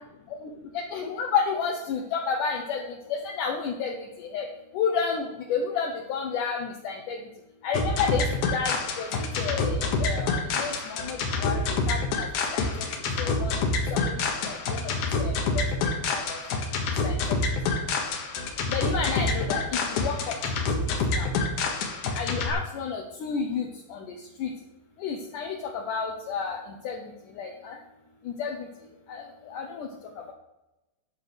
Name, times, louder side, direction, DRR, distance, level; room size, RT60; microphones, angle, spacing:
voice 1, 0.7-2.8 3.1-3.9 4.2-4.5 4.7-7.2 7.6-8.3 8.5-12.3 12.5-12.6 13.2-13.6 13.9-14.0 14.5-14.9 15.2-15.6 16.1-16.4 17.0-17.2 18.7-20.3 21.2-21.3 22.1-24.0 24.4-24.5 25.0-26.6 26.8-27.0 27.4-27.8 28.4-28.6 29.1-29.9, left 6 dB, 75° left, 2 dB, 1.9 m, -30 dB
sound 1, 7.7-22.5, left 3 dB, 60° left, 2.3 m, -27 dB
11.0 x 6.8 x 6.2 m, 1.0 s
omnidirectional pair, 5.0 m